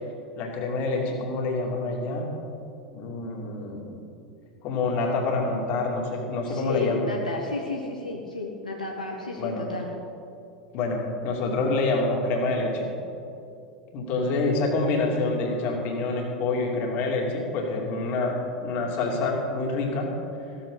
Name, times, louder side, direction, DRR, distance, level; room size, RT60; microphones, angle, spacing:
voice 1, 0.4-2.3 2.9-4.0 4.6-7.0 9.4-9.7 10.7-12.9 13.9-20.1, left 3 dB, 45° left, 0 dB, 2.7 m, -27 dB
voice 2, 6.5-9.9, left 3 dB, 90° left, -1 dB, 1.3 m, -32 dB
15.0 x 13.5 x 4.0 m, 2.6 s
figure-of-eight pair, 85°, 4 cm